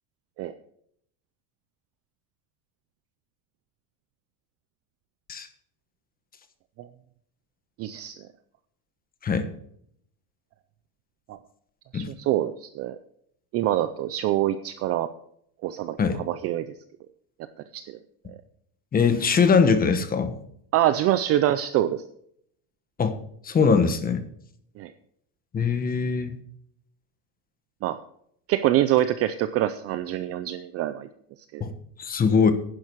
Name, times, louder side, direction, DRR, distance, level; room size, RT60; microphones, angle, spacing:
voice 1, 7.8-8.2 11.3-11.4 11.9-13.0 13.5-15.1 15.6-16.0 16.3-16.6 17.7-17.9 20.7-22.0 24.8-24.9 27.8-28.0 28.5-31.1 31.5-31.6, right 13 dB, 30° right, 12 dB, 0.4 m, -25 dB
voice 2, 18.9-20.3 23.0-23.2 23.4-24.2 25.5-26.4 31.6-31.7 32.0-32.5, left 5 dB, 20° left, 10 dB, 1.1 m, -21 dB
11.0 x 10.5 x 4.5 m, 0.68 s
cardioid pair, 160°, 48 cm